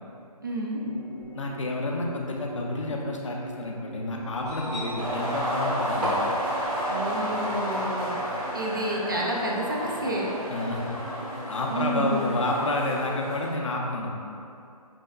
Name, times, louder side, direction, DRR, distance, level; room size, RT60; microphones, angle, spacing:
voice 1, 0.4-0.8 6.9-8.1 8.5-10.3 11.7-12.2, right 1 dB, 35° right, -2 dB, 0.4 m, -29 dB
sound 1, 0.7-13.4, equal, 5° right, 0.7 m, -42 dB
voice 2, 1.3-6.3 10.5-11.0 11.5-14.1, left 2 dB, 50° left, -1 dB, 0.5 m, -29 dB
sound 2, 4.3-7.3 8.4-8.5, equal, 85° right, 1.4 m, -35 dB
sound 3, 5.0-13.5, equal, 55° right, 1.3 m, -32 dB
5.3 x 2.0 x 2.3 m, 2.6 s
figure-of-eight pair, 165°, 20 cm